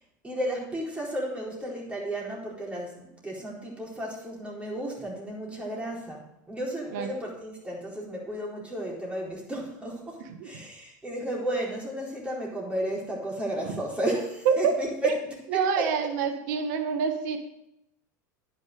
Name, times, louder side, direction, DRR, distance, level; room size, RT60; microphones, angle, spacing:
voice 1, 0.2-15.1 15.5-15.9, right 1 dB, 10° right, -4 dB, 4.4 m, -33 dB
voice 2, 15.5-17.4, right 6 dB, 70° right, 6 dB, 1.5 m, -26 dB
10.0 x 6.6 x 6.8 m, 0.85 s
hypercardioid pair, 105°, 10 cm